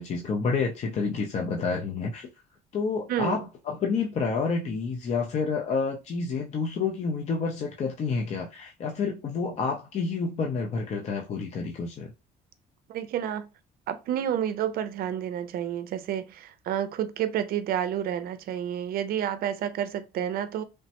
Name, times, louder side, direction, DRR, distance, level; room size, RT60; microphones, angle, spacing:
voice 1, 0.0-2.3 2.7-12.1, left 4 dB, 40° left, 0.5 m, -29 dB
voice 2, 3.1-3.5 12.9-13.5 13.9-20.6, right 10 dB, 65° right, 0.4 m, -30 dB
3.2 x 2.1 x 2.8 m
cardioid pair, 110°, 17 cm